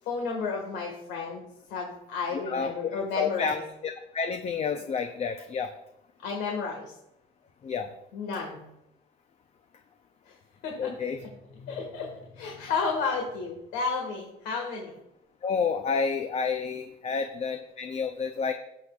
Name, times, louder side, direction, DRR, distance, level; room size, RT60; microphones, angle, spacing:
voice 1, 0.0-3.6 6.2-6.9 8.1-8.6 10.3-10.4 10.6-10.9 11.2-15.0, left 4 dB, 85° left, -1 dB, 1.7 m, -32 dB
voice 2, 3.2-3.6 3.8-5.7 7.6-7.9 10.8-11.2 15.4-18.5, left 5 dB, 40° left, 6 dB, 0.6 m, -29 dB
17.5 x 6.5 x 2.4 m, 0.85 s
cardioid pair, 110°, 17 cm